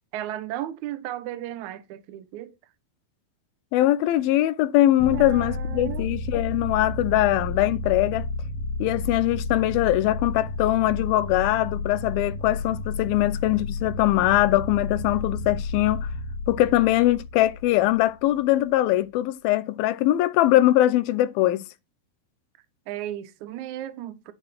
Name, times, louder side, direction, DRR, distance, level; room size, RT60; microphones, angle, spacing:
voice 1, 0.1-2.5 5.1-6.1 22.9-24.3, right 12 dB, 70° right, 2.0 m, -35 dB
voice 2, 3.7-8.3 8.8-16.1 16.5-21.6, left 15 dB, 85° left, 2.5 m, -22 dB
sound 1, 5.0-18.4, left 2 dB, 65° left, 2.8 m, -32 dB
10.5 x 4.3 x 5.9 m
omnidirectional pair, 4.3 m